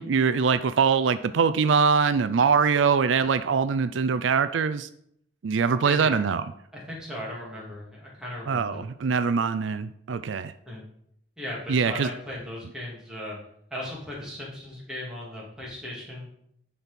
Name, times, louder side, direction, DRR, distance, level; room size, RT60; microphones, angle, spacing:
voice 1, 0.0-4.9 5.4-6.4 8.5-10.5 11.7-12.1, right 5 dB, 85° right, 13 dB, 0.4 m, -23 dB
voice 2, 5.8-6.2 6.7-8.9 10.6-10.8 11.4-13.4 13.7-16.3, left 1 dB, 5° right, -5 dB, 2.5 m, -37 dB
10.5 x 4.2 x 5.2 m, 0.71 s
head